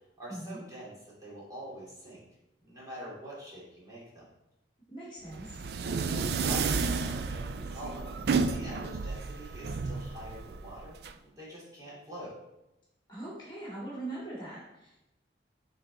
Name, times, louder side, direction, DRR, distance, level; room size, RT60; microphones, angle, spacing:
voice 1, 0.2-2.2 2.6-4.3 5.8-12.3, equal, 20° right, -7 dB, 2.6 m, -45 dB
voice 2, 4.9-5.6 13.1-15.0, right 2 dB, 25° left, -7 dB, 2.3 m, -41 dB
sound 1, 5.3-11.1, right 4 dB, 55° right, 0.4 m, -32 dB
8.5 x 4.1 x 4.0 m, 0.91 s
head